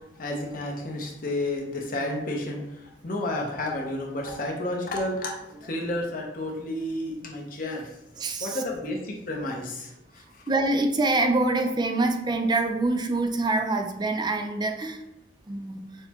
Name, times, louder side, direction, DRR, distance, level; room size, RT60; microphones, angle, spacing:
voice 1, 0.2-5.3 5.6-7.9 8.4-10.2, left 1 dB, 55° left, 0 dB, 0.8 m, -31 dB
voice 2, 10.5-15.0 15.5-15.8, right 2 dB, 25° right, 5 dB, 0.4 m, -25 dB
6.4 x 2.1 x 2.9 m, 0.86 s
head